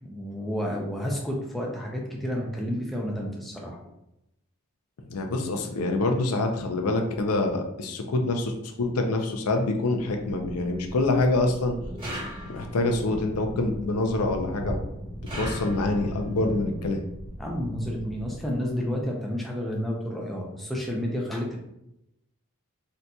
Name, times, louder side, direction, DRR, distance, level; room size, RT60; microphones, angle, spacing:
voice 1, 0.0-3.8 17.4-21.6, equal, ahead, -2 dB, 0.4 m, -30 dB
voice 2, 5.1-11.8 12.5-14.8 15.3-17.0, left 2 dB, 85° left, 4 dB, 0.5 m, -26 dB
sound 1, 9.8-19.0, equal, 85° right, 1.3 m, -38 dB
sound 2, 12.0-12.9 15.3-16.2, equal, 20° right, 1.1 m, -38 dB
3.9 x 2.7 x 2.2 m, 0.84 s
head